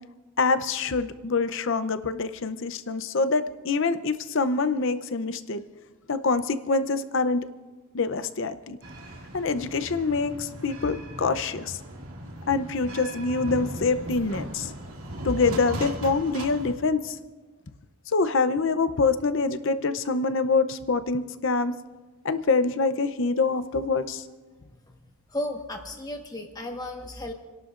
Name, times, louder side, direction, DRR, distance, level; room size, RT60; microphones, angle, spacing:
voice 1, 0.4-5.6 6.1-7.4 7.9-8.8 9.3-11.8 12.5-14.7 15.2-17.1 18.1-21.7 22.2-24.2, left 4 dB, 55° left, 12 dB, 0.7 m, -25 dB
sound 1, 8.8-16.7, right 1 dB, 70° right, 2.3 m, -38 dB
voice 2, 25.3-27.3, left 1 dB, 15° left, 3 dB, 1.4 m, -34 dB
29.5 x 11.5 x 2.5 m, 1.2 s
head